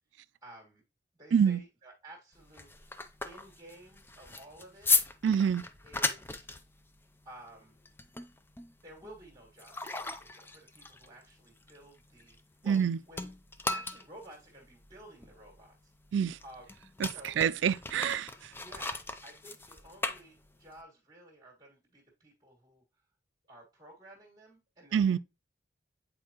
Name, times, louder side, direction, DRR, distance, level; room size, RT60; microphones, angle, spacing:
voice 1, 0.4-0.8 1.1-4.9 5.8-6.5 7.2-7.8 8.8-12.8 13.1-13.3 13.6-15.9 16.4-16.6 17.0-17.8 18.5-22.8 23.5-25.2, right 1 dB, 20° right, 1.7 m, -53 dB
voice 2, 1.3-1.6 5.2-5.6 12.7-13.0 16.1-16.4 17.0-18.5 24.9-25.2, right 7 dB, 80° right, 0.3 m, -27 dB
sound 1, 2.3-12.8 13.1-20.8, left 3 dB, 10° left, 0.4 m, -36 dB
8.6 x 4.5 x 2.9 m
head